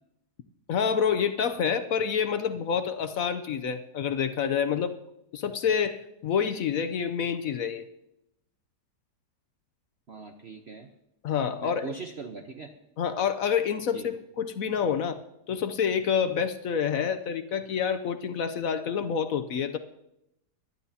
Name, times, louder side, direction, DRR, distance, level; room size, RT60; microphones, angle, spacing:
voice 1, 0.7-4.9 5.3-7.9 11.2-11.9 13.0-15.2 15.5-19.8, left 7 dB, 65° left, 10 dB, 1.0 m, -28 dB
voice 2, 10.1-10.9 11.6-12.7 13.9-14.1, right 4 dB, 45° right, 3 dB, 1.0 m, -40 dB
24.0 x 11.5 x 2.8 m, 0.84 s
omnidirectional pair, 1.8 m